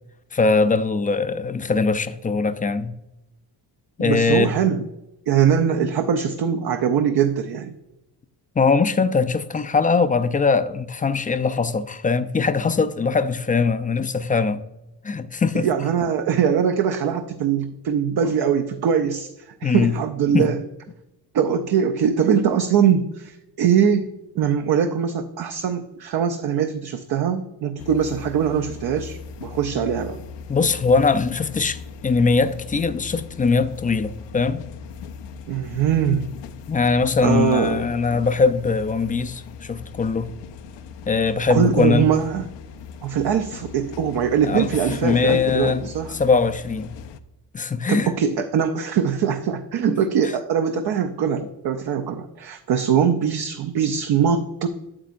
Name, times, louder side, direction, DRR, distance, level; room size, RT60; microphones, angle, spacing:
voice 1, 0.3-2.9 4.0-4.5 8.6-14.6 15.0-15.7 19.6-19.9 20.3-20.5 30.5-34.6 36.7-40.3 41.1-42.1 44.4-44.7 45.0-46.9 47.5-48.1 49.9-50.0, left 4 dB, 20° left, 0.4 m, -21 dB
voice 2, 4.0-4.8 5.3-7.7 15.5-20.6 21.3-24.1 24.3-30.2 35.5-36.3 37.2-37.8 41.5-42.5 43.0-46.1 47.9-54.7, right 7 dB, 60° right, 0.6 m, -22 dB
sound 1, 27.8-47.2, left 6 dB, 85° left, 0.7 m, -38 dB
8.6 x 8.1 x 2.5 m
cardioid pair, 100°, 43 cm